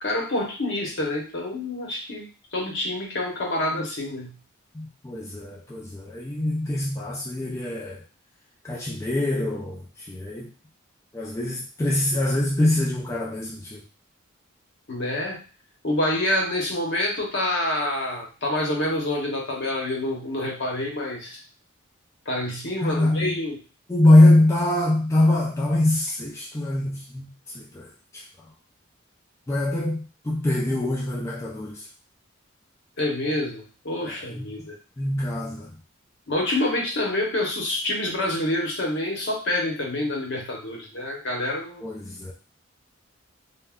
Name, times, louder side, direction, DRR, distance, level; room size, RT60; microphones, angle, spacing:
voice 1, 0.0-4.3 14.9-15.4 15.8-21.4 22.3-23.6 33.0-34.7 36.3-41.8, left 1 dB, 60° left, 0 dB, 0.9 m, -27 dB
voice 2, 4.7-8.0 8.6-10.5 11.1-13.8 22.8-23.3 23.9-28.2 29.5-31.9 34.0-34.5 35.0-35.7 41.8-42.3, left 1 dB, 15° left, -3 dB, 0.3 m, -23 dB
3.5 x 2.1 x 2.3 m, 0.35 s
head